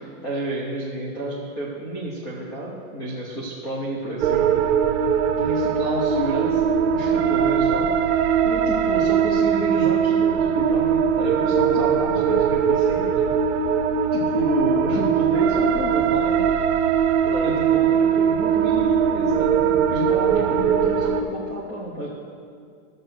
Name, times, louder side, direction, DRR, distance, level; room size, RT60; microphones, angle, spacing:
voice 1, 0.0-4.6 5.4-7.9 8.4-13.1 14.1-16.5 17.2-22.1, right 1 dB, 10° left, -4 dB, 0.5 m, -30 dB
sound 1, 4.2-21.2, right 7 dB, 55° right, 0.9 m, -20 dB
13.0 x 7.7 x 6.1 m, 2.3 s
supercardioid pair, 180°, 44 cm